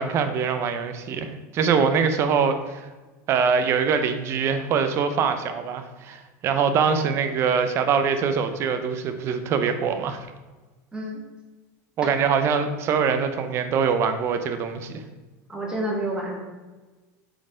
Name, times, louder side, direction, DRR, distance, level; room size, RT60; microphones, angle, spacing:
voice 1, 0.0-2.9 3.3-10.3 12.0-15.0, right 6 dB, 30° right, 8 dB, 0.7 m, -23 dB
voice 2, 15.5-16.3, right 1 dB, 10° right, -2 dB, 1.5 m, -28 dB
7.7 x 4.4 x 5.0 m, 1.2 s
supercardioid pair, 165°, 9 cm